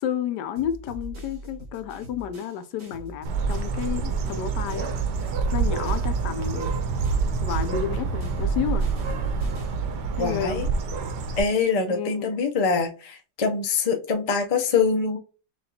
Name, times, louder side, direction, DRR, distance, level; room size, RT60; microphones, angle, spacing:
voice 1, 0.0-4.9 5.5-6.8 7.4-8.9 10.2-10.6 11.9-12.3, left 9 dB, 85° left, 1.2 m, -31 dB
sound 1, 0.6-5.0 5.3-9.9, equal, 60° right, 2.3 m, -42 dB
Bird, 3.2-11.4, right 5 dB, 90° right, 1.3 m, -27 dB
voice 2, 10.2-10.7 11.4-15.2, left 5 dB, 65° left, 0.3 m, -24 dB
6.4 x 2.5 x 2.8 m
omnidirectional pair, 1.8 m